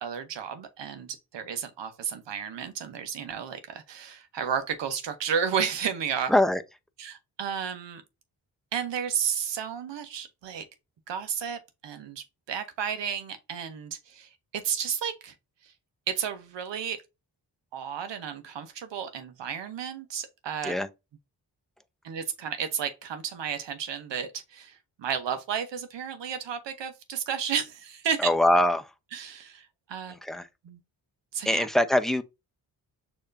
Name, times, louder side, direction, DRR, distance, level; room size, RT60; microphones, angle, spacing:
voice 1, 0.0-6.3 7.0-8.0 8.7-10.6 11.1-15.3 15.6-15.7 16.1-17.0 17.7-20.7 22.0-28.3 29.1-30.1 30.6-30.8 31.3-31.7, right 7 dB, 75° right, 1.0 m, -32 dB
voice 2, 6.3-6.6 20.6-20.9 28.2-28.9 30.2-30.5 31.5-32.2, left 1 dB, ahead, 0.6 m, -23 dB
6.4 x 2.9 x 2.6 m
supercardioid pair, 40°, 44 cm